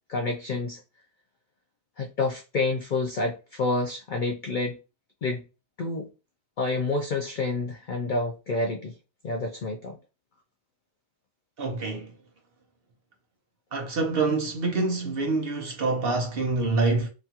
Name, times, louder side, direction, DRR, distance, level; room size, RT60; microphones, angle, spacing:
voice 1, 0.1-0.8 2.0-4.8 5.2-5.4 5.8-6.1 6.6-9.0 9.2-10.0, left 3 dB, 85° left, 0.4 m, -28 dB
voice 2, 11.6-12.1 13.7-17.1, right 3 dB, 55° right, 0.8 m, -26 dB
2.9 x 2.3 x 2.7 m
omnidirectional pair, 1.4 m